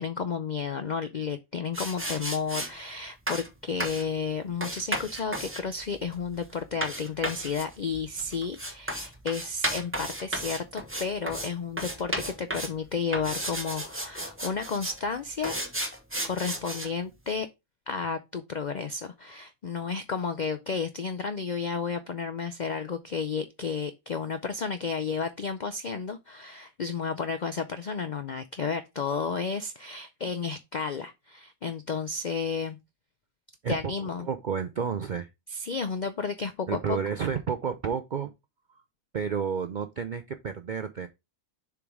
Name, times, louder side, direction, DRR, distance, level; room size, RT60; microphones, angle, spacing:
voice 1, 0.0-15.5 16.2-17.5 17.9-32.8 33.7-34.3 35.5-37.0, left 5 dB, 70° left, 0.4 m, -32 dB
sound 1, 1.7-2.7 3.3-3.5 3.8-4.1 4.6-11.5 11.8-12.8 13.1-15.0 15.4-16.9, right 1 dB, 10° right, 1.0 m, -33 dB
voice 2, 34.2-35.3 36.7-38.3 38.7-38.8 39.1-41.1, right 7 dB, 65° right, 0.4 m, -31 dB
7.0 x 3.6 x 4.8 m
omnidirectional pair, 1.4 m